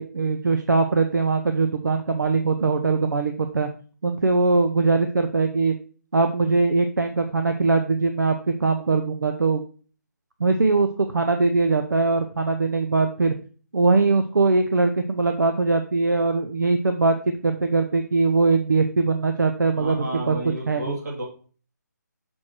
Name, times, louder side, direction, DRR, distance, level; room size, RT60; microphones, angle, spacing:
voice 1, 0.0-3.7 4.0-5.7 6.1-9.6 10.4-13.3 13.7-17.1 17.4-20.4 20.7-21.0, right 3 dB, 85° right, 7 dB, 0.7 m, -21 dB
voice 2, 19.7-21.2, equal, 65° right, -3 dB, 3.0 m, -31 dB
6.3 x 4.4 x 4.5 m, 0.41 s
figure-of-eight pair, 155°, 10 cm